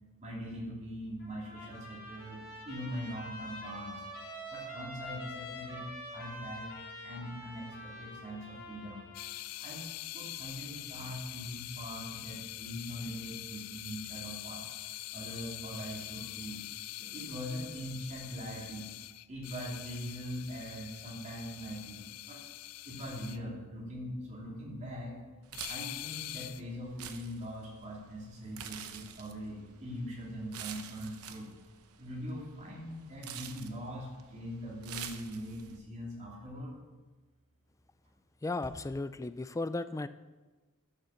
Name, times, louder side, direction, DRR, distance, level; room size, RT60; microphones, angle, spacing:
voice 1, 0.2-4.0 4.5-6.7 7.0-9.1 9.6-9.9 10.1-14.6 15.1-16.6 17.0-18.9 19.3-22.4 22.9-25.2 25.7-31.5 32.0-36.8, equal, 35° right, -3 dB, 3.0 m, -42 dB
Trumpet, 1.2-9.4, left 1 dB, 60° left, 4.2 m, -46 dB
sound 1, 9.1-23.4 25.5-26.6, left 16 dB, 85° left, 0.4 m, -44 dB
sound 2, 25.4-35.8, right 9 dB, 75° right, 0.8 m, -48 dB
voice 2, 38.4-40.1, left 2 dB, 15° left, 13 dB, 0.3 m, -35 dB
11.5 x 6.6 x 5.8 m, 1.2 s
head